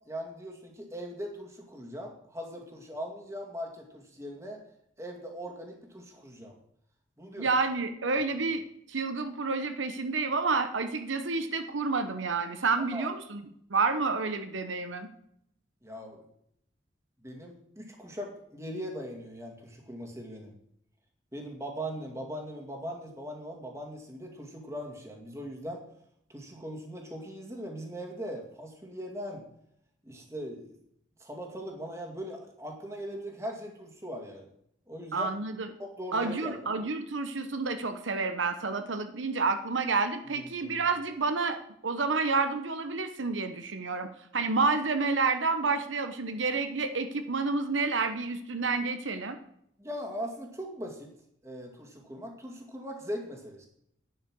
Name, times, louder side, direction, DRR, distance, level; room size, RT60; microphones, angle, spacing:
voice 1, 0.1-4.6 5.0-6.5 7.2-7.5 12.9-13.2 15.8-16.2 17.2-20.6 21.3-25.8 26.3-29.5 30.0-30.7 31.2-34.5 34.9-35.3 35.8-36.6 40.4-40.8 49.8-51.1 51.4-53.7, equal, 15° right, 0 dB, 2.2 m, -40 dB
voice 2, 7.4-8.6 8.9-13.4 13.7-15.1 35.1-35.7 36.1-49.4, right 4 dB, 85° right, 8 dB, 1.0 m, -29 dB
11.0 x 9.5 x 6.2 m, 0.72 s
head